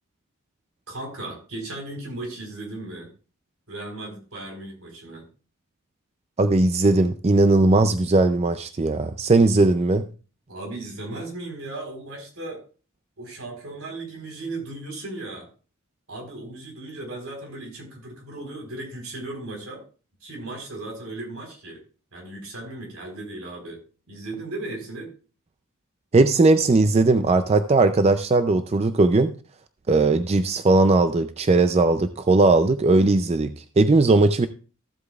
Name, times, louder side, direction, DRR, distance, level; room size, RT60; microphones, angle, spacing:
voice 1, 0.9-3.1 3.7-5.3 10.5-12.6 13.2-15.5 16.1-19.8 20.2-21.8 22.1-23.8 24.1-25.1, right 2 dB, 75° right, 1 dB, 3.9 m, -36 dB
voice 2, 6.4-10.0 26.1-29.3 29.9-34.5, right 3 dB, 30° right, 10 dB, 0.4 m, -18 dB
14.5 x 8.1 x 2.3 m, 0.37 s
head